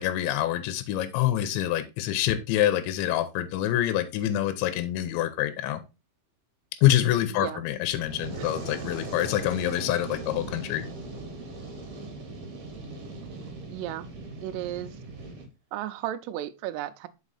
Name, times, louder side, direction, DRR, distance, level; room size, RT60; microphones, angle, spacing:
voice 1, 0.0-5.8 6.8-10.9, left 12 dB, 85° left, 3.0 m, -26 dB
voice 2, 7.3-7.6 8.4-8.5 13.7-14.1 14.4-15.0 15.7-17.1, right 13 dB, 85° right, 2.5 m, -34 dB
Fire, 7.8-15.5, right 2 dB, 55° right, 2.1 m, -39 dB
6.0 x 4.9 x 4.0 m
omnidirectional pair, 5.2 m